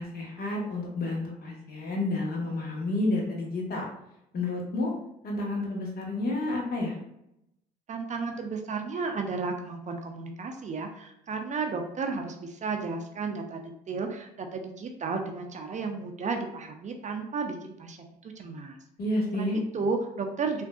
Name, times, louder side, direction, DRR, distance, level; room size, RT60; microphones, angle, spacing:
voice 1, 0.0-3.8 4.3-4.9 5.2-7.0 19.0-19.6, left 2 dB, 50° left, -1 dB, 1.1 m, -30 dB
voice 2, 7.9-13.6 13.9-18.0 18.2-18.8 19.3-19.5 19.7-20.6, right 4 dB, 35° right, 4 dB, 0.5 m, -33 dB
3.5 x 2.5 x 2.3 m, 0.81 s
supercardioid pair, 70°, 20 cm